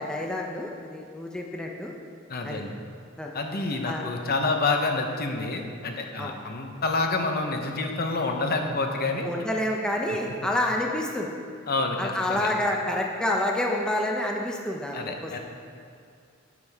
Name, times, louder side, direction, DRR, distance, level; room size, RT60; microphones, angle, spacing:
voice 1, 0.0-1.9 2.4-2.6 3.2-3.3 3.9-4.1 6.2-6.3 9.2-11.3 12.0-15.4, left 1 dB, 5° left, -1 dB, 0.7 m, -28 dB
voice 2, 2.3-2.7 3.3-9.3 11.7-12.5 14.9-15.4, left 3 dB, 50° left, 3 dB, 0.9 m, -28 dB
11.0 x 8.2 x 3.6 m, 2.4 s
head